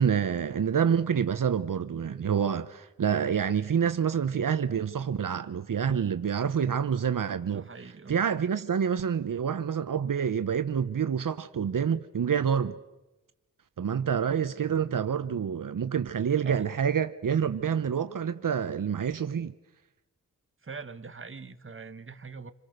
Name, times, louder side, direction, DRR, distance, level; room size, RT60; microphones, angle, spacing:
voice 1, 0.0-7.6 8.1-12.7 13.8-19.5, right 7 dB, 75° right, 1.0 m, -27 dB
voice 2, 7.5-8.3 16.4-16.7 20.6-22.5, right 4 dB, 40° right, 1.5 m, -42 dB
27.5 x 26.5 x 6.6 m
wide cardioid pair, 90°, 32 cm